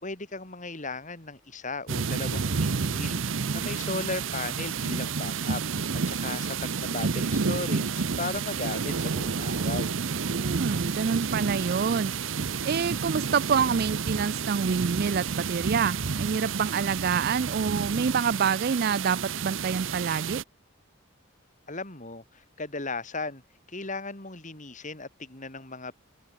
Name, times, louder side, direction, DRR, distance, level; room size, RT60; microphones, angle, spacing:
voice 1, 0.0-3.2 3.5-5.6 5.9-6.6 6.8-10.0 21.7-23.4 23.7-25.9, left 3 dB, 40° left, 3.7 m, -36 dB
sound 1, 1.9-20.4, right 5 dB, 70° right, 0.8 m, -30 dB
voice 2, 3.4-4.0 10.3-12.1 12.6-20.4, right 6 dB, 50° right, 0.4 m, -27 dB
open air
head